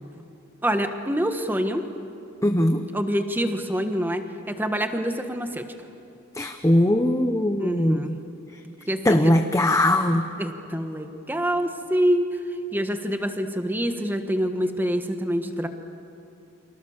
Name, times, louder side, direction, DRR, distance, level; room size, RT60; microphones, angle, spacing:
voice 1, 0.6-1.9 2.9-5.7 7.6-8.1 8.9-9.3 10.4-12.4 12.7-15.7, equal, 10° right, 7 dB, 1.4 m, -26 dB
voice 2, 2.4-2.8 6.4-8.2 9.0-10.3, left 1 dB, 15° left, 6 dB, 0.8 m, -20 dB
29.5 x 25.5 x 7.3 m, 2.8 s
head